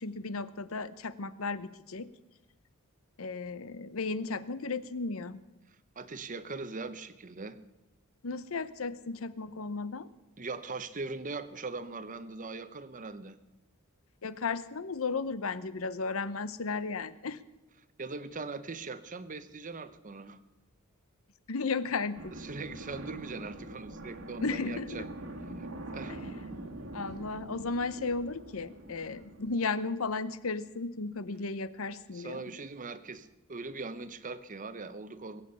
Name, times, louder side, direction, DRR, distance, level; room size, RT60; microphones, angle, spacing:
voice 1, 0.0-2.1 3.2-5.4 8.2-10.1 14.2-17.4 21.5-22.3 24.4-25.0 26.9-32.5, left 4 dB, 70° left, 15 dB, 0.8 m, -34 dB
voice 2, 6.0-7.6 10.4-13.4 18.0-20.4 22.3-25.1 25.6-25.7 25.9-26.1 32.1-35.4, right 3 dB, 35° right, 12 dB, 0.8 m, -40 dB
sound 1, 22.1-29.6, right 2 dB, 80° right, 2.0 m, -44 dB
21.0 x 8.5 x 6.9 m, 1.0 s
head